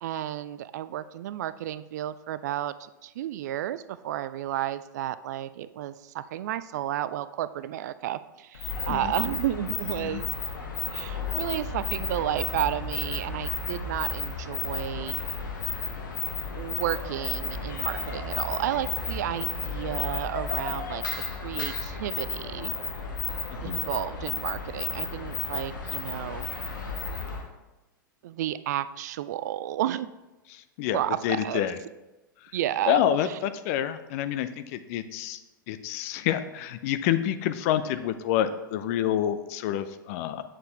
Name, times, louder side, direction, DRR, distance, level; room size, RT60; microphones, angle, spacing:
voice 1, 0.0-10.3 10.9-15.2 16.5-21.0 21.3-22.7 23.6-26.5 28.2-30.1 30.9-31.7 32.5-33.0 33.3-33.4, right 12 dB, 55° right, 15 dB, 0.3 m, -32 dB
sound 1, 8.5-27.5, left 4 dB, 65° left, 1.3 m, -33 dB
voice 2, 23.5-23.8 30.5-31.8 32.4-32.5 32.9-35.4 35.7-40.4, left 10 dB, 45° left, 11 dB, 0.5 m, -28 dB
8.7 x 6.7 x 3.3 m, 1.0 s
figure-of-eight pair, 95°, 11 cm